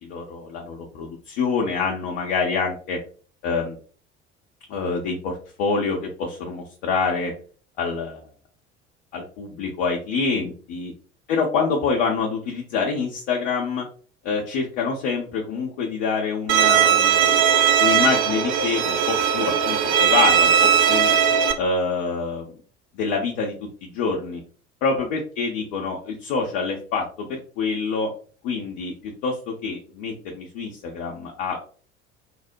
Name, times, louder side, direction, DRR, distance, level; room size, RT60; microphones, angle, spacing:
voice 1, 0.0-3.0 3.4-3.8 4.7-7.3 7.8-8.2 9.1-10.9 11.3-13.9 14.2-17.4 17.8-20.5 20.9-21.1 21.6-22.5 22.9-23.5 23.8-24.4 24.8-28.1 28.4-31.6, left 4 dB, 55° left, 0 dB, 0.6 m, -26 dB
Bowed string instrument, 16.5-21.5, right 8 dB, 40° right, 0.4 m, -18 dB
3.0 x 2.0 x 2.5 m, 0.40 s
figure-of-eight pair, 60°, 35 cm